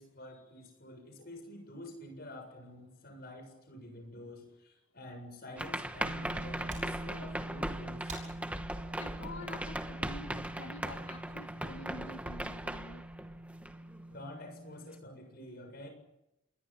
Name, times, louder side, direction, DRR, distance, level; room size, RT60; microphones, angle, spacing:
voice 1, 0.0-8.2 14.1-15.9, left 1 dB, 45° left, 6 dB, 7.2 m, -48 dB
sound 1, 5.6-14.0, right 1 dB, 5° right, 1.2 m, -39 dB
sound 2, 6.0-15.0, right 1 dB, 55° right, 2.8 m, -46 dB
sound 3, 7.9-10.6, right 3 dB, 35° right, 6.4 m, -53 dB
voice 2, 9.0-13.0, left 2 dB, 70° left, 4 dB, 1.8 m, -48 dB
27.5 x 22.0 x 7.5 m, 0.86 s
head